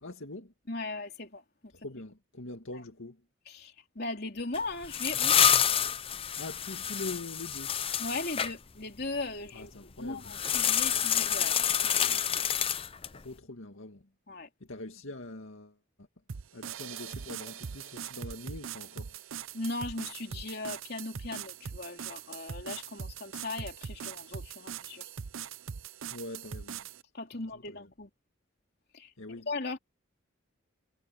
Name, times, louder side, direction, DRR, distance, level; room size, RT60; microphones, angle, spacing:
voice 1, 0.0-0.5 1.7-3.2 6.4-7.8 9.5-10.4 13.1-14.1 14.6-16.1 16.5-19.1 26.1-26.9 27.3-27.9 29.2-29.5, left 2 dB, 75° left, 2.1 m, -43 dB
voice 2, 0.7-1.7 2.7-2.8 3.5-5.6 8.0-9.7 10.0-11.9 12.3-12.5 14.3-14.5 19.5-25.1 27.1-28.1 28.9-29.1 29.5-29.8, left 2 dB, 50° left, 3.6 m, -38 dB
sound 1, 4.5-8.5 10.3-13.2, left 9 dB, 25° left, 0.6 m, -28 dB
sound 2, 16.3-27.0, right 7 dB, 75° right, 0.6 m, -41 dB
head